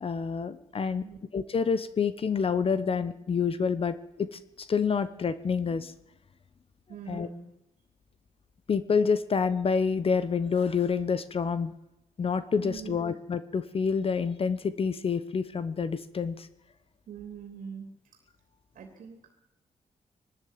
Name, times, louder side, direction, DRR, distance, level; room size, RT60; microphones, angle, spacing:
voice 1, 0.0-1.0 1.3-5.9 7.1-7.3 8.7-11.7 12.2-16.5, left 5 dB, 45° left, 13 dB, 1.0 m, -28 dB
voice 2, 0.9-1.2 6.9-7.5 12.6-13.0 17.1-17.9 18.7-19.3, right 6 dB, 90° right, 3 dB, 3.2 m, -42 dB
21.5 x 13.0 x 9.4 m, 0.93 s
cardioid pair, 115°, 13 cm